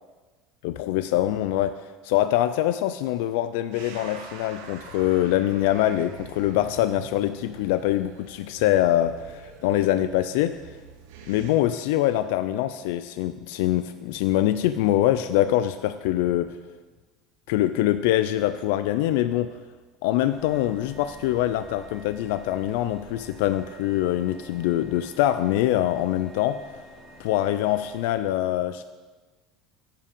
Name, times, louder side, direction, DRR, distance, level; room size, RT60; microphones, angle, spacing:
voice 1, 0.6-1.7 2.0-10.6 11.3-16.5 17.5-19.5 20.0-26.6 27.2-28.8, left 13 dB, 75° left, 11 dB, 0.3 m, -24 dB
sound 1, 3.7-11.5, right 6 dB, 85° right, 1.1 m, -45 dB
sound 2, 20.3-27.9, equal, 20° right, 2.0 m, -48 dB
9.7 x 5.6 x 5.3 m, 1.3 s
cardioid pair, 170°, 0 cm